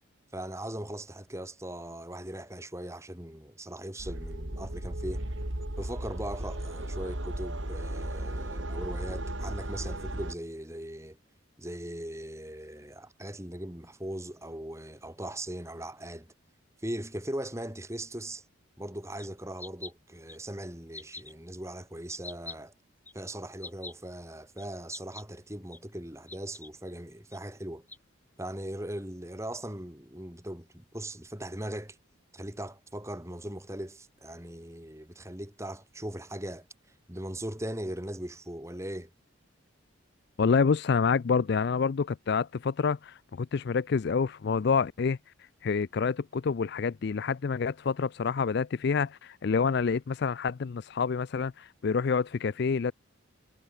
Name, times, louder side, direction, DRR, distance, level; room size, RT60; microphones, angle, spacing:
voice 1, 0.3-5.2 5.8-11.2 11.6-16.3 16.8-18.4 18.8-22.7 23.1-27.9 28.4-32.0 32.3-36.7 37.1-39.1, right 1 dB, 15° right, 3.2 m, -39 dB
sound 1, 4.0-10.3, right 1 dB, 65° right, 3.0 m, -35 dB
sound 2, 19.2-19.3 19.6-19.9 20.3-20.4 20.9-21.3 22.1-22.6 23.1-23.2 23.6-23.9 24.6-24.7 24.9-25.2 25.7-25.8 26.3-26.7 27.3-27.4 27.9-28.0, left 3 dB, 10° left, 3.9 m, -43 dB
voice 2, 40.4-45.2 45.6-52.9, left 5 dB, 50° left, 0.4 m, -27 dB
head